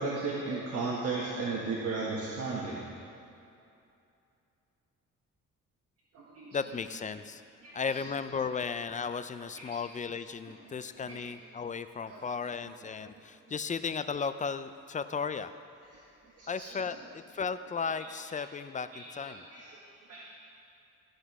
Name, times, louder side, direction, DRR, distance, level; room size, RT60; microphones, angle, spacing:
voice 1, 0.0-2.8 6.1-6.6 7.6-7.7 9.7-9.8 11.1-11.2 12.1-12.2 16.4-16.7 18.9-19.0 19.5-19.7 20.1-20.3, right 3 dB, 55° right, -5 dB, 1.5 m, -34 dB
voice 2, 6.5-7.4 7.7-15.5 16.5-19.4, left 5 dB, 25° left, 12 dB, 0.4 m, -35 dB
13.5 x 5.1 x 6.0 m, 2.6 s
cardioid pair, 90°, 30 cm